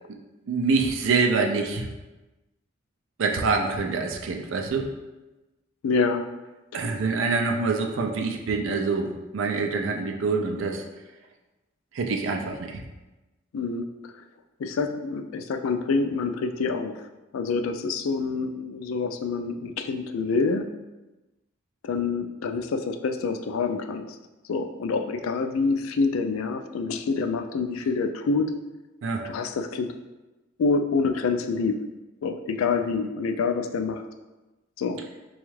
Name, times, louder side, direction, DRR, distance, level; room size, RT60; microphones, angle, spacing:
voice 1, 0.5-1.9 3.2-4.9 6.7-10.8 11.9-12.8 29.0-29.2, right 4 dB, 70° right, 3 dB, 0.4 m, -25 dB
voice 2, 5.8-6.2 13.5-13.8 14.6-17.1 17.3-20.7 21.8-24.2 24.5-28.5 29.2-29.9 30.6-31.8 32.2-34.0 34.8-35.0, left 4 dB, 90° left, 7 dB, 0.3 m, -26 dB
4.1 x 2.3 x 3.1 m, 1.1 s
head